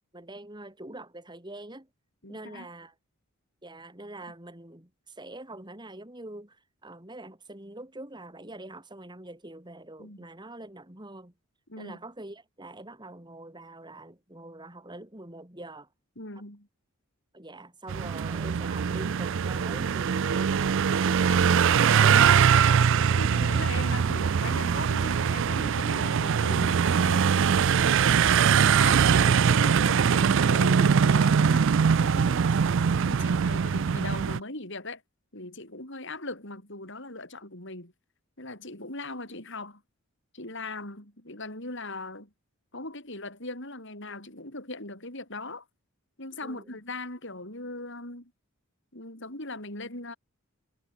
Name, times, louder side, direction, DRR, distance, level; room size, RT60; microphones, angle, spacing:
voice 1, 0.1-1.9 2.3-2.9 3.6-11.3 11.8-15.9 17.3-22.3 24.0-24.1 46.4-46.8, right 1 dB, 20° right, 2.9 m, -44 dB
voice 2, 2.2-2.7 10.0-10.2 11.7-12.0 16.2-16.7 23.1-27.4 27.9-32.4 33.0-35.0 35.3-37.9 38.4-39.8 40.3-42.3 42.7-45.7 46.2-48.3 48.9-50.2, left 2 dB, 55° left, 7.6 m, -39 dB
sound 1, 17.9-34.4, right 7 dB, 55° right, 0.4 m, -22 dB
sound 2, 21.2-27.8, left 3 dB, 35° left, 5.8 m, -47 dB
head